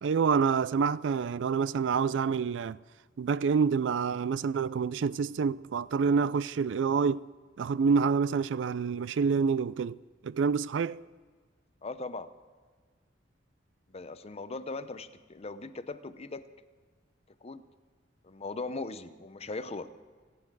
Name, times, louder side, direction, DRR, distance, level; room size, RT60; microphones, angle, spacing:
voice 1, 0.0-2.8 3.2-7.3 7.6-10.0 10.2-11.0, right 5 dB, 70° right, 0.4 m, -27 dB
voice 2, 11.8-12.3 13.9-16.5 17.4-17.6 18.2-19.9, left 3 dB, 35° left, 0.7 m, -39 dB
30.0 x 10.0 x 4.7 m
head